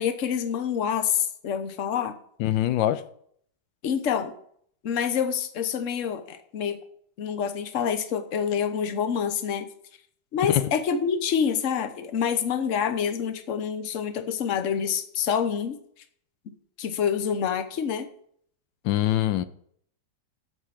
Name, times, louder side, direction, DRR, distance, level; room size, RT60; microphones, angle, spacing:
voice 1, 0.0-2.2 3.8-4.3 4.8-6.8 7.2-9.7 10.3-15.8 16.5-18.1, left 7 dB, 50° left, 1.2 m, -27 dB
voice 2, 2.4-3.0 10.5-10.7 18.8-19.4, left 13 dB, 90° left, 1.4 m, -23 dB
8.3 x 7.8 x 7.5 m
omnidirectional pair, 2.0 m